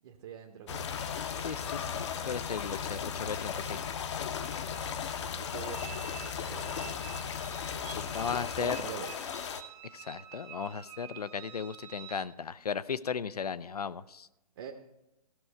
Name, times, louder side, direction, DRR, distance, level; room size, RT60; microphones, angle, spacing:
voice 1, 0.0-0.9 5.3-7.1 8.1-9.3 14.6-14.7, right 8 dB, 40° right, 2 dB, 0.8 m, -45 dB
sound 1, 0.7-9.6, left 7 dB, 45° left, 0.7 m, -36 dB
sound 2, 0.9-12.3, right 11 dB, 10° right, 0.3 m, -50 dB
voice 2, 1.4-3.8 7.9-8.8 9.9-14.3, left 6 dB, 80° left, 16 dB, 0.5 m, -36 dB
16.0 x 6.3 x 4.5 m, 0.91 s
figure-of-eight pair, 135°, 20 cm